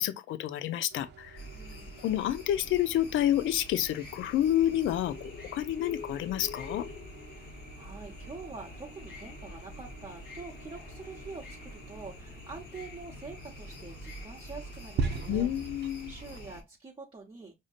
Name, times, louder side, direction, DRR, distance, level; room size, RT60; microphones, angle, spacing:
voice 1, 0.0-1.4 2.0-6.9 15.3-16.1, left 12 dB, 80° left, 0.5 m, -29 dB
sound 1, 0.9-16.4, right 4 dB, 60° right, 0.6 m, -44 dB
sound 2, 1.4-16.6, left 2 dB, 55° left, 1.4 m, -45 dB
voice 2, 1.5-2.0 7.3-15.5 16.1-17.5, right 4 dB, 25° right, 0.9 m, -46 dB
5.0 x 2.7 x 2.4 m
cardioid pair, 90°, 20 cm